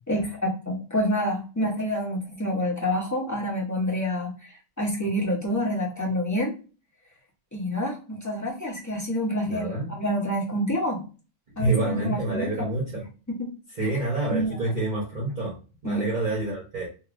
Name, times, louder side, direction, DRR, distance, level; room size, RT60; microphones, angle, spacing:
voice 1, 0.1-6.6 7.5-11.1 11.6-12.4 13.4-13.5 13.8-13.9 14.3-14.6 15.8-16.1, equal, 20° left, -2 dB, 0.6 m, -28 dB
voice 2, 9.4-10.0 11.6-13.1 13.8-16.9, right 2 dB, 40° right, -4 dB, 0.8 m, -28 dB
3.1 x 2.3 x 2.4 m, 0.34 s
omnidirectional pair, 1.3 m